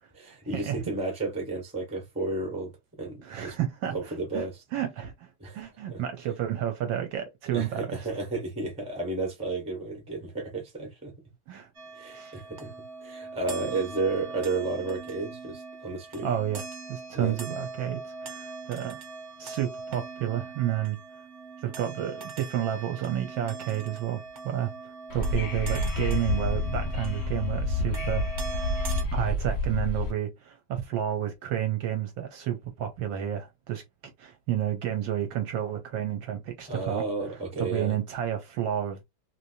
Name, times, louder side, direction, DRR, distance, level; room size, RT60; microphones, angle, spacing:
voice 1, 0.2-3.6 3.9-4.6 5.4-6.0 7.5-11.1 11.9-12.7 13.0-16.3 17.1-17.4 36.7-38.0, right 3 dB, 5° right, 0.9 m, -32 dB
voice 2, 3.2-3.9 4.3-4.4 4.7-5.3 5.5-8.0 11.5-11.7 12.1-12.4 16.2-16.6 16.9-19.0 19.4-21.0 21.6-28.2 29.1-37.0 37.6-39.0, right 11 dB, 70° right, 1.3 m, -31 dB
sound 1, 11.7-29.0, right 4 dB, 50° right, 0.9 m, -41 dB
Wind / Subway metro underground, 25.1-30.1, left 2 dB, 45° left, 0.8 m, -29 dB
3.2 x 2.9 x 2.7 m
omnidirectional pair, 2.4 m